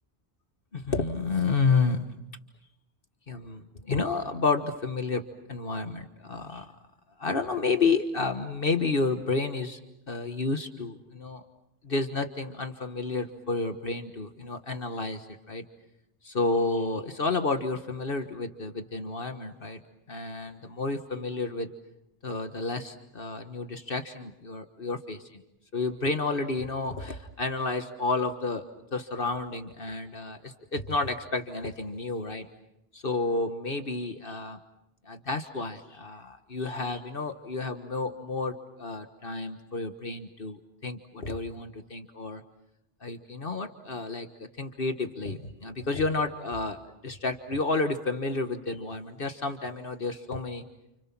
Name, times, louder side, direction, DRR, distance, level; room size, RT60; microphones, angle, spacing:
voice 1, 0.7-2.1 3.3-5.2 5.5-6.7 7.2-9.8 10.1-11.4 11.8-15.6 16.2-19.8 20.1-21.7 22.2-25.4 25.7-28.6 28.9-32.5 32.9-34.6 35.0-42.4 43.0-50.6, left 3 dB, 60° left, 7 dB, 1.6 m, -30 dB
30.0 x 29.5 x 6.1 m, 0.84 s
omnidirectional pair, 1.1 m